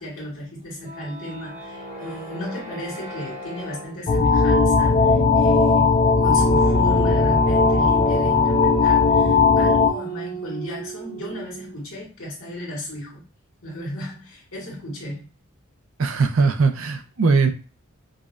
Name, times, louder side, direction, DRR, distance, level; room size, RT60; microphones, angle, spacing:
voice 1, 0.0-13.2 13.6-15.3, equal, 75° left, 1.7 m, -34 dB
sound 1, 0.6-11.8, right 5 dB, 35° right, 0.8 m, -35 dB
sound 2, 4.1-9.9, left 4 dB, 30° left, 0.4 m, -17 dB
voice 2, 16.0-17.5, right 4 dB, 65° right, 0.5 m, -20 dB
5.0 x 2.2 x 2.4 m
head